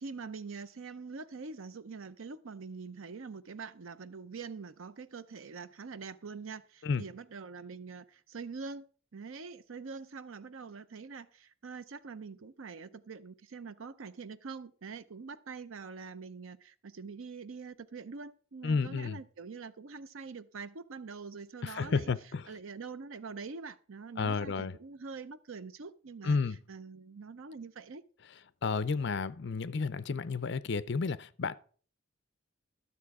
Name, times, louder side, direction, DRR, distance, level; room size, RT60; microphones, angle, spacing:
voice 1, 0.0-8.9 9.1-22.1 22.5-26.4 26.7-28.0, right 4 dB, 80° right, 0.6 m, -44 dB
voice 2, 18.6-19.2 21.6-22.5 24.2-24.8 26.2-26.6 28.6-31.5, left 4 dB, 55° left, 0.5 m, -31 dB
12.5 x 6.9 x 4.8 m
head